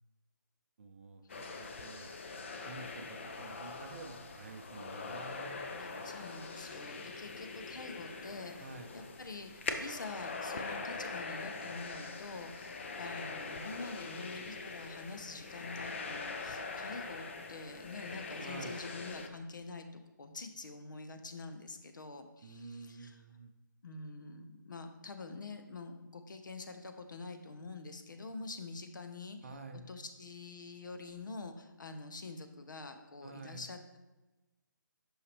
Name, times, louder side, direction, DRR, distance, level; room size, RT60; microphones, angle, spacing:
voice 1, 0.8-5.7 8.6-8.9 18.4-18.8 22.4-23.5 29.4-29.9 33.2-33.6, right 3 dB, 40° right, 7 dB, 0.5 m, -49 dB
sound 1, 1.3-19.3, left 4 dB, 35° left, 0.5 m, -43 dB
voice 2, 6.0-8.6 8.9-9.5 9.8-19.9 20.2-23.2 23.8-29.4 29.9-34.0, left 3 dB, 70° left, 7 dB, 0.7 m, -46 dB
5.6 x 5.6 x 3.3 m, 1.1 s
hypercardioid pair, 165°, 11 cm